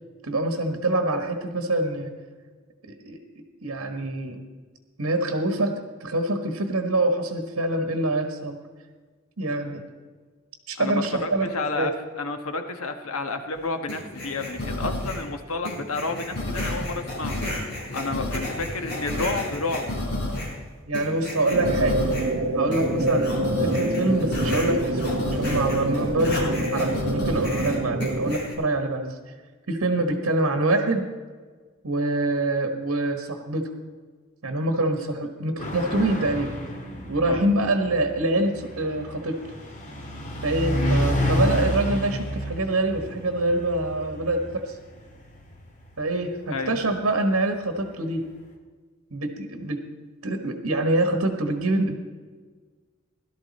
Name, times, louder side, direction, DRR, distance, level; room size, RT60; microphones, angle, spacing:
voice 1, 0.2-2.2 3.0-3.2 3.6-4.4 5.0-8.6 9.4-9.8 10.7-11.9 20.9-22.1 22.5-29.3 29.7-31.1 31.8-33.7 34.4-36.6 37.0-39.4 40.4-44.8 46.0-48.2 49.1-49.8 50.2-51.9, right 2 dB, 80° right, 5 dB, 1.4 m, -25 dB
voice 2, 10.8-19.9 37.2-37.5 40.7-41.0 46.5-46.8, left 3 dB, 90° left, 7 dB, 1.3 m, -31 dB
sound 1, 13.9-15.3 15.6-20.6 20.9-22.4 22.7-28.5, left 1 dB, 55° left, 5.4 m, -31 dB
sound 2, 21.5-28.4, right 1 dB, 55° right, 0.9 m, -26 dB
sound 3, 35.6-46.6, equal, 35° left, 1.9 m, -30 dB
17.0 x 12.0 x 4.2 m, 1.5 s
head